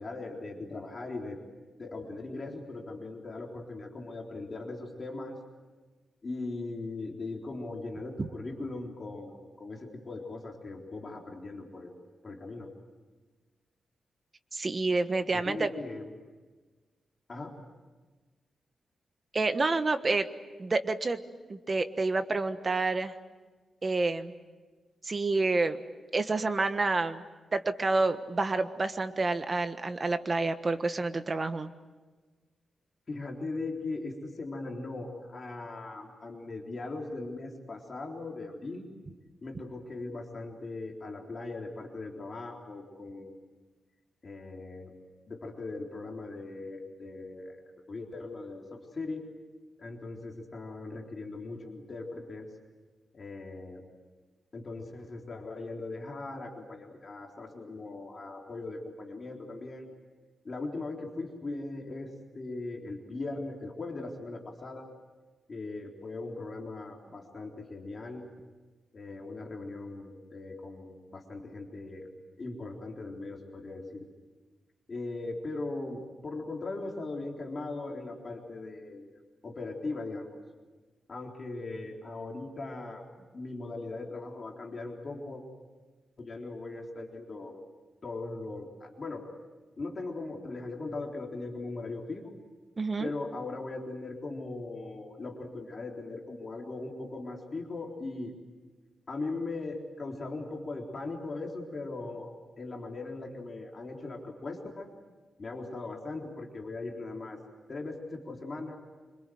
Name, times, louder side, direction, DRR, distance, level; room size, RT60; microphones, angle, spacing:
voice 1, 0.0-1.4 1.8-5.4 6.2-11.9 12.2-12.7 15.3-16.1 17.3-17.5 33.1-38.9 39.4-43.4 44.2-44.9 45.3-47.6 47.9-49.2 49.8-52.5 53.1-53.8 54.5-59.9 60.4-64.9 65.5-68.3 68.9-72.1 72.4-74.1 74.9-79.1 79.4-80.4 81.1-85.4 86.2-87.5 88.0-89.2 89.8-92.3 93.0-98.3 99.1-102.3 102.6-104.9 105.4-107.4 107.7-108.8, left 3 dB, 35° left, 0 dB, 3.9 m, -39 dB
voice 2, 14.5-15.7 19.3-20.3 20.6-21.2 21.5-23.1 23.8-24.3 25.0-25.8 26.1-27.2 27.5-31.7 92.8-93.1, right 3 dB, 30° right, 9 dB, 1.3 m, -28 dB
26.0 x 25.5 x 7.9 m, 1.3 s
wide cardioid pair, 140°, 0 cm